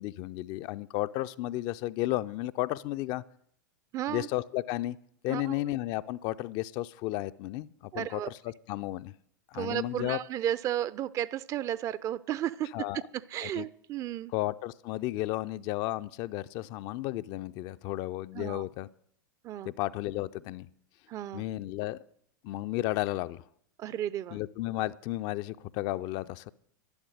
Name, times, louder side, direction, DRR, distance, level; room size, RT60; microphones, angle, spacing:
voice 1, 0.0-3.2 4.1-5.0 5.2-9.1 9.5-10.2 12.7-13.0 13.4-13.7 14.3-18.9 19.6-20.7 21.3-22.0 22.4-23.4 24.3-26.5, left 16 dB, 40° left, 13 dB, 0.5 m, -33 dB
voice 2, 3.9-4.3 5.3-5.5 7.9-8.3 9.5-12.7 13.1-14.3 18.3-18.6 19.4-19.7 21.1-21.5 23.8-24.4, right 12 dB, 30° right, 19 dB, 0.5 m, -33 dB
11.5 x 11.5 x 6.4 m, 0.67 s
figure-of-eight pair, 90°, 10 cm